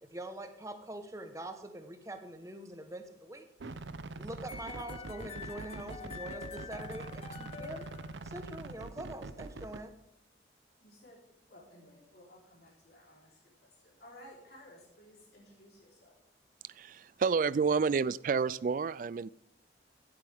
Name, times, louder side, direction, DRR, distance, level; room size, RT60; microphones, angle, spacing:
voice 1, 0.0-3.5 4.2-7.9 8.2-9.9, right 1 dB, 15° right, 7 dB, 1.0 m, -44 dB
sound 1, 3.6-9.8, right 3 dB, 85° right, 0.7 m, -44 dB
sound 2, 4.5-8.6, left 6 dB, 35° left, 0.7 m, -47 dB
voice 2, 10.8-11.2 11.5-13.4 13.8-16.2, left 1 dB, 60° left, -4 dB, 3.6 m, -56 dB
voice 3, 16.6-19.3, right 5 dB, 45° right, 20 dB, 0.3 m, -30 dB
16.5 x 7.8 x 3.5 m, 0.78 s
head